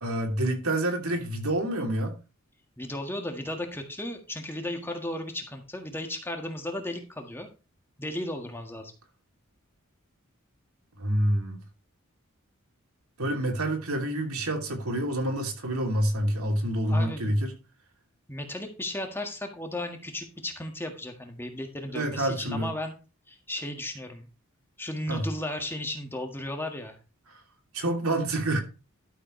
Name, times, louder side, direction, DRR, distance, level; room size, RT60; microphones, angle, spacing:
voice 1, 0.0-2.2 11.0-11.6 13.2-17.5 21.9-22.7 25.1-25.2 27.7-28.6, right 1 dB, 75° right, 3.0 m, -27 dB
voice 2, 2.8-7.5 8.0-8.9 16.9-17.2 18.3-23.0 23.3-24.3 24.8-27.0, left 1 dB, 10° left, 1.7 m, -35 dB
12.0 x 7.5 x 3.2 m
head